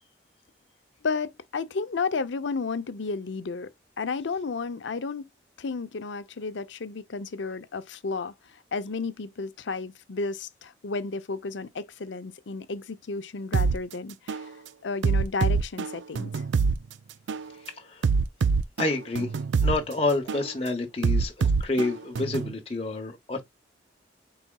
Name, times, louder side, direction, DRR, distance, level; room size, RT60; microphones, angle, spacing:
voice 1, 1.0-3.7 4.0-5.2 5.6-14.5 14.8-16.5, left 4 dB, 80° left, 0.6 m, -32 dB
sound 1, 13.5-13.7 14.3-14.5 15.0-16.8 17.3-17.5 18.0-19.8 20.3-20.5 21.0-22.5, right 5 dB, 80° right, 0.4 m, -24 dB
voice 2, 18.8-19.3 19.6-23.4, left 2 dB, 30° left, 0.8 m, -28 dB
4.7 x 4.1 x 2.3 m
head